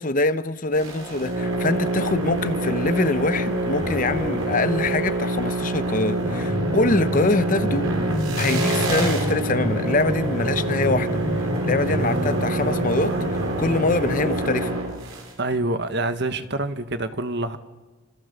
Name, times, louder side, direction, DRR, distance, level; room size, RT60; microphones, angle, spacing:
voice 1, 0.0-7.9 8.4-11.2 11.6-13.2 13.6-14.8, left 2 dB, 40° left, 0.9 m, -24 dB
sound 1, 0.7-15.3, right 1 dB, 90° right, 6.6 m, -26 dB
sound 2, 6.2-14.4, equal, 5° left, 2.2 m, -29 dB
voice 2, 15.4-17.6, right 2 dB, 50° right, 1.6 m, -26 dB
29.0 x 26.5 x 7.0 m
head